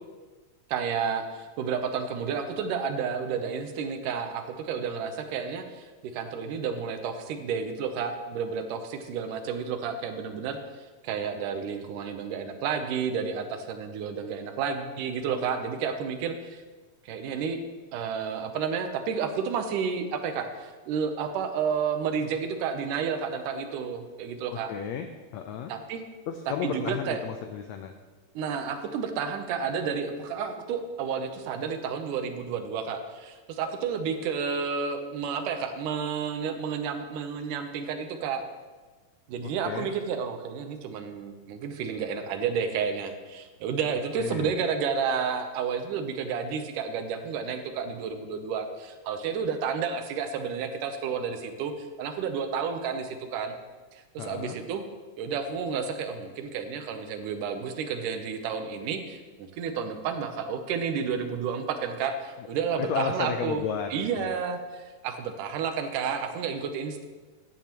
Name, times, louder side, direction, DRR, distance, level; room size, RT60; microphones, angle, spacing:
voice 1, 0.7-16.6 17.1-17.6 17.9-24.7 25.7-26.0 26.6-27.2 28.4-38.4 39.3-53.5 53.9-54.8 55.2-63.6 63.9-67.0, right 6 dB, 80° right, 7 dB, 2.3 m, -31 dB
voice 2, 24.7-25.1 25.3-25.7 26.3-27.9 39.4-39.9 44.1-44.6 54.2-54.6 62.4-64.4, left 7 dB, 85° left, 6 dB, 1.5 m, -33 dB
14.5 x 9.7 x 3.0 m, 1.3 s
omnidirectional pair, 3.8 m